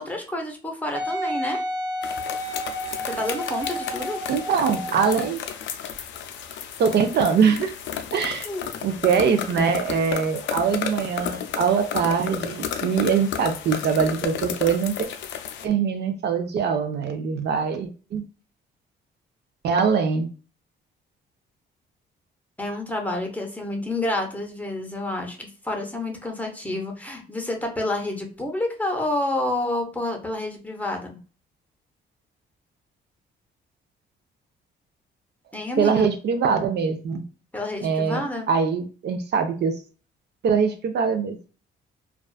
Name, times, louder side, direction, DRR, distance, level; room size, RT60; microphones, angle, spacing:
voice 1, 0.0-1.6 3.1-4.2 8.5-8.7 22.6-31.2 35.5-36.1 37.5-38.5, left 1 dB, 10° left, 2 dB, 0.7 m, -29 dB
Wind instrument woodwind instrument, 0.9-5.3 5.9-6.0, equal, 20° right, 1.0 m, -31 dB
sound 1, 2.0-15.6, left 8 dB, 70° left, 0.4 m, -33 dB
voice 2, 4.3-5.4 6.8-7.7 8.1-8.5 8.8-15.1 15.6-18.2 19.6-20.3 35.8-37.2 37.8-39.8 40.4-41.4, right 6 dB, 60° right, 7 dB, 0.5 m, -23 dB
2.4 x 2.3 x 2.3 m, 0.37 s
cardioid pair, 90°, 20 cm